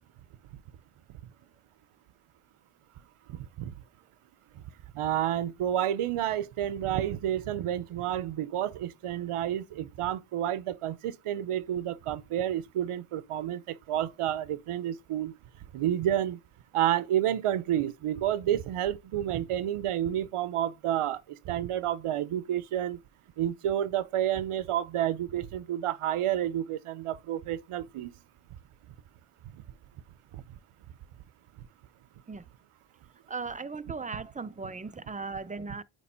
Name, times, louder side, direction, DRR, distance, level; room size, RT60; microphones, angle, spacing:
voice 1, 3.3-3.7 4.9-15.3 15.7-16.4 16.7-21.2 21.5-23.0 23.4-28.1 30.3-30.4, right 11 dB, 85° right, 0.7 m, -30 dB
voice 2, 33.3-35.8, right 4 dB, 15° right, 0.5 m, -37 dB
8.6 x 3.2 x 4.3 m
cardioid pair, 65°, 50 cm